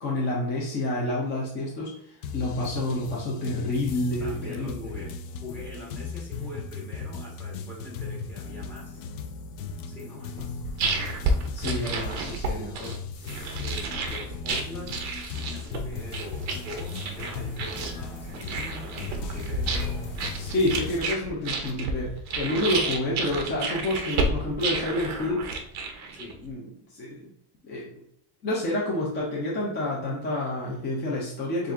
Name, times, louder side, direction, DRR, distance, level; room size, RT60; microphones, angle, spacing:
voice 1, 0.0-4.9 11.5-12.9 20.3-25.4 26.4-27.3 27.6-27.9 28.4-31.7, left 1 dB, 25° left, -4 dB, 0.4 m, -29 dB
sound 1, 2.2-21.0, left 5 dB, 80° left, 0.6 m, -37 dB
voice 2, 4.2-9.0 9.9-10.6 12.4-12.9 13.5-20.6 26.1-26.4, left 1 dB, 5° left, -3 dB, 1.2 m, -43 dB
sound 2, 10.4-26.5, right 3 dB, 35° right, 0.5 m, -31 dB
sound 3, 15.9-21.1, right 1 dB, 15° right, 1.1 m, -46 dB
7.0 x 2.5 x 2.4 m, 0.75 s
cardioid pair, 160°, 49 cm